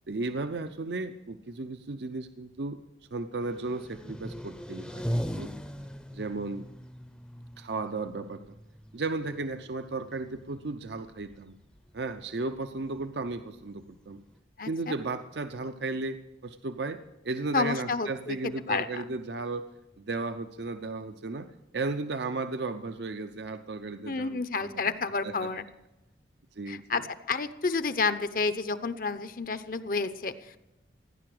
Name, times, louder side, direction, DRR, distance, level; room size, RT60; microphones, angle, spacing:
voice 1, 0.1-2.8 3.1-5.5 6.1-6.7 7.6-8.6 8.9-11.6 11.9-14.2 14.7-19.7 20.0-24.9 25.2-25.5 26.6-27.0, right 3 dB, 70° right, 9 dB, 0.6 m, -35 dB
sound 1, 3.4-14.4, equal, 5° left, 0.6 m, -40 dB
voice 2, 14.6-14.9 17.5-19.0 24.0-25.7 26.7-30.6, left 4 dB, 50° left, 12 dB, 0.8 m, -30 dB
16.0 x 10.5 x 7.7 m, 0.95 s
head